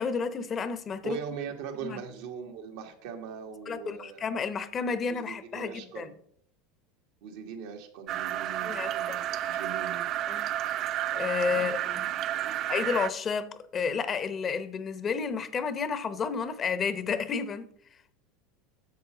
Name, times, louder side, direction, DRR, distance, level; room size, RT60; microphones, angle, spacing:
voice 1, 0.0-1.2 1.8-2.0 3.7-6.1 8.6-9.2 10.3-10.5 11.1-12.1 12.7-17.7, left 5 dB, 30° left, 0.8 m, -31 dB
voice 2, 1.0-4.3 5.1-6.1 7.2-10.1 11.5-11.7 11.9-12.6, right 7 dB, 75° right, 1.8 m, -41 dB
sound 1, 8.1-13.1, right 12 dB, 45° right, 0.4 m, -31 dB
10.5 x 7.4 x 3.9 m
supercardioid pair, 115°, 0 cm